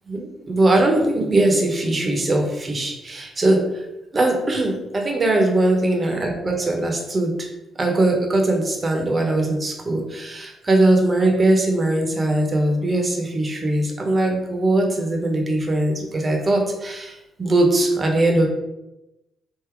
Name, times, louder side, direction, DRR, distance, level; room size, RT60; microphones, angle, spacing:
voice 1, 0.1-3.8 4.1-7.5 7.8-18.5, right 2 dB, 30° right, 2 dB, 1.1 m, -20 dB
3.8 x 2.8 x 4.5 m, 0.95 s
cardioid pair, 90°, 0 cm